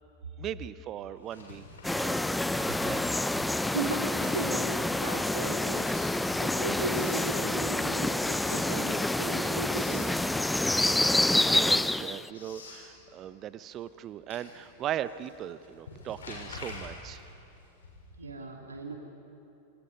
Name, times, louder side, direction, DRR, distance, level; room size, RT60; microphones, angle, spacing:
voice 1, 0.4-3.0 11.2-17.2, right 11 dB, 30° right, 15 dB, 0.8 m, -39 dB
Writing, 1.2-2.8 3.1-7.9 8.3-9.2 9.5-10.2 10.6-18.3, left 3 dB, 65° left, 6.9 m, -49 dB
sound 1, 1.8-12.3, left 1 dB, 5° left, 0.5 m, -28 dB
voice 2, 3.7-10.2 18.2-18.9, right 2 dB, 75° right, 0 dB, 3.1 m, -37 dB
28.0 x 26.5 x 5.4 m, 2.7 s
figure-of-eight pair, 90°, 0 cm